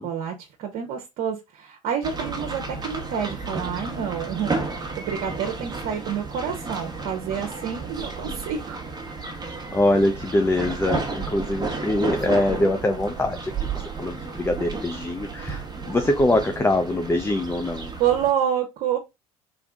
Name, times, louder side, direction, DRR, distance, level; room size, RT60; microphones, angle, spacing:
voice 1, 0.0-8.8 18.0-19.0, right 8 dB, 55° right, 1.0 m, -28 dB
sound 1, 2.0-18.3, right 4 dB, 20° right, 1.2 m, -32 dB
voice 2, 9.5-17.9, left 1 dB, 15° left, 0.6 m, -24 dB
3.5 x 3.5 x 3.7 m
hypercardioid pair, 65°, 18 cm